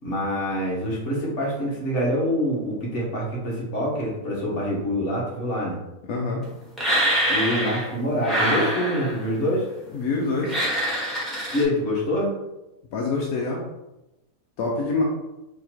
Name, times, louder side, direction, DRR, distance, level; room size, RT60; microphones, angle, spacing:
voice 1, 0.0-5.8 7.3-9.7 11.5-12.3, equal, 55° left, -5 dB, 1.7 m, -25 dB
voice 2, 6.1-6.4 9.9-10.6 12.9-13.6 14.6-15.0, left 3 dB, 80° left, -1 dB, 1.1 m, -25 dB
sound 1, 6.8-7.9 8.2-9.3 10.4-11.6, equal, ahead, 1.2 m, -24 dB
4.0 x 2.9 x 4.4 m, 0.96 s
omnidirectional pair, 1.5 m